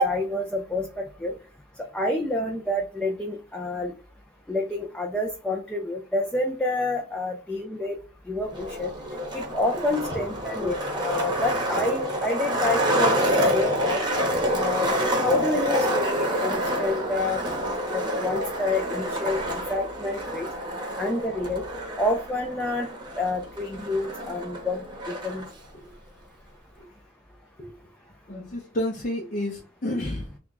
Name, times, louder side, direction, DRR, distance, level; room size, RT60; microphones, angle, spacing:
voice 1, 0.0-1.3 1.9-3.9 4.5-8.0 8.3-8.9 9.3-14.0 14.5-15.0 15.2-17.4 17.9-19.4 19.7-20.5 21.0-21.6 22.0-22.9 23.2-24.8 25.2-25.5, left 1 dB, 5° left, 1 dB, 0.4 m, -28 dB
Skateboard, 8.5-25.5, equal, 20° right, 0.9 m, -27 dB
voice 2, 28.3-30.4, left 1 dB, 45° left, 0 dB, 0.6 m, -31 dB
3.4 x 2.3 x 4.0 m, 0.35 s
head